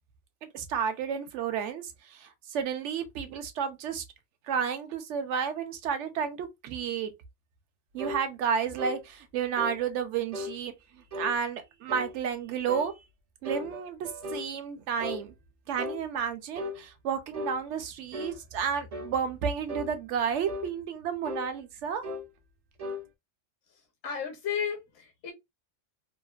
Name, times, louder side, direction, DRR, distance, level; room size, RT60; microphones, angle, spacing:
voice 1, 0.5-4.0 4.5-7.1 7.9-10.7 11.2-12.9 13.4-15.3 15.7-22.0, right 7 dB, 75° right, 0.9 m, -31 dB
sound 1, 8.0-8.2 8.8-9.0 9.6-9.8 10.3-10.6 11.1-11.4 11.9-12.2 12.7-12.9 13.4-14.5 15.0-15.2 15.8-16.0 16.6-16.8 17.3-17.6 18.1-18.4 18.9-19.1 19.7-19.9 20.5-20.7 21.2-21.5 22.0-22.3 22.8-23.0, left 2 dB, 50° right, 0.4 m, -36 dB
voice 2, 24.0-25.3, left 7 dB, 80° left, 1.2 m, -33 dB
2.9 x 2.4 x 2.3 m
omnidirectional pair, 1.3 m